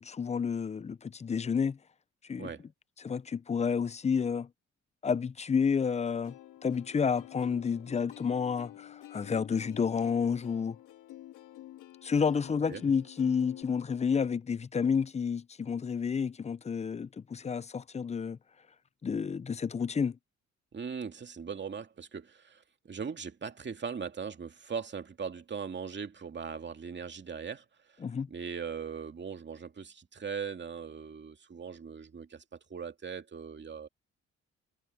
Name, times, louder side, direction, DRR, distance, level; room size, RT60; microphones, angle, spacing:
voice 1, 0.0-1.8 2.3-2.5 3.0-4.5 5.0-6.4 6.6-10.8 12.0-18.4 19.0-20.2 28.0-28.3, left 6 dB, 20° left, 0.5 m, -30 dB
Plucked string instrument, 6.2-13.6, left 14 dB, 90° left, 3.0 m, -49 dB
voice 2, 20.7-28.0 28.3-33.9, right 6 dB, 35° right, 2.3 m, -40 dB
cardioid pair, 90°, 30 cm